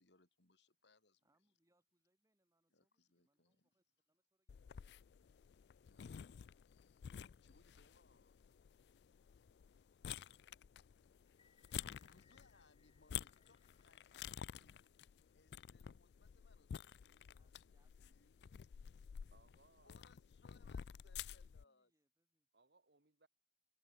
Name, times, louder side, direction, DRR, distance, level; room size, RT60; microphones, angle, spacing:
voice 1, 0.0-1.2 2.7-3.7 5.8-8.7 11.4-14.8 15.3-18.5 19.8-21.9, left 3 dB, 85° left, 4.0 m, -73 dB
voice 2, 1.2-4.9 17.4-19.5 21.0-22.5, right 1 dB, 20° right, 3.7 m, -86 dB
sound 1, 4.5-21.6, left 9 dB, 70° left, 0.3 m, -52 dB
sound 2, 11.3-15.6, left 6 dB, 30° left, 2.5 m, -76 dB
voice 3, 19.3-20.0 22.5-23.3, right 3 dB, 65° right, 2.2 m, -71 dB
head